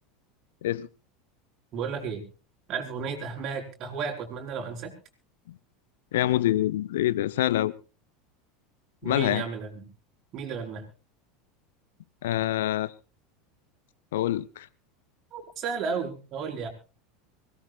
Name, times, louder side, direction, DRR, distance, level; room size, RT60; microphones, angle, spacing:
voice 1, 1.7-2.2 2.7-4.9 9.0-9.9 10.3-10.8 15.3-16.7, right 6 dB, 40° right, 4.8 m, -33 dB
voice 2, 6.1-7.7 9.0-9.5 12.2-12.9 14.1-14.7, left 14 dB, 65° left, 0.7 m, -26 dB
24.5 x 17.5 x 2.4 m
figure-of-eight pair, 80°, 0 cm